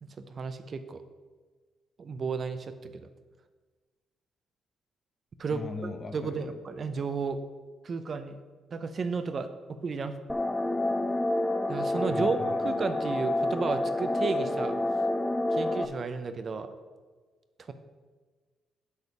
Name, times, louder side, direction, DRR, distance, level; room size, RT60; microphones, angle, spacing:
voice 1, 0.0-1.0 2.0-3.1 5.4-5.6 6.1-7.4 7.8-8.4 8.7-10.2 11.7-14.8 15.5-16.7 17.6-17.7, right 5 dB, 45° right, 10 dB, 0.6 m, -33 dB
voice 2, 5.5-6.5 12.1-12.5, left 3 dB, 35° left, 7 dB, 1.0 m, -38 dB
sound 1, 10.3-15.9, left 1 dB, 10° left, 0.6 m, -28 dB
6.5 x 5.1 x 6.9 m, 1.4 s
cardioid pair, 90°, 0 cm